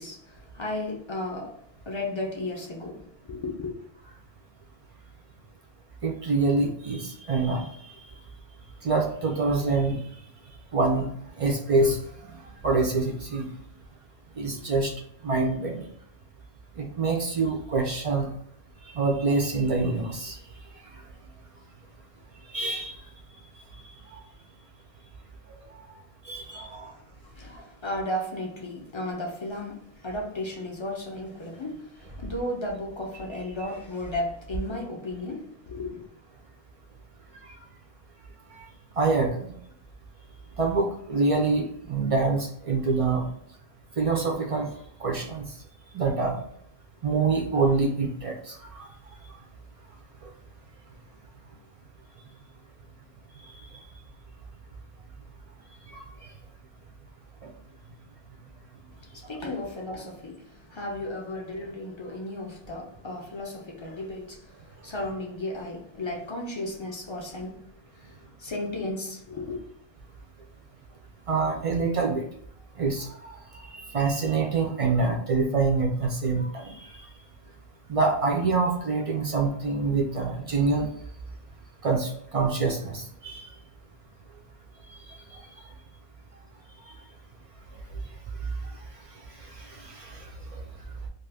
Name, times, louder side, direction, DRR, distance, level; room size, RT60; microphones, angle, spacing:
voice 1, 0.0-3.7 26.7-27.0 27.3-36.1 59.0-67.6 68.0-69.6, left 1 dB, 50° left, 0.3 m, -34 dB
voice 2, 6.0-7.7 8.8-10.0 10.7-11.1 11.4-12.0 12.2-12.4 12.6-13.5 14.4-14.9 15.2-15.9 16.8-18.3 18.9-20.3 22.5-23.0 25.7-25.9 26.2-26.9 39.0-39.5 40.6-43.2 44.0-44.7 45.0-45.4 45.9-46.4 47.0-48.5 55.9-56.0 71.3-72.2 72.8-73.3 73.9-76.8 77.9-80.9 81.8-83.4 89.6-90.2, right 3 dB, 65° right, 0.3 m, -25 dB
2.6 x 2.4 x 3.3 m
omnidirectional pair, 1.2 m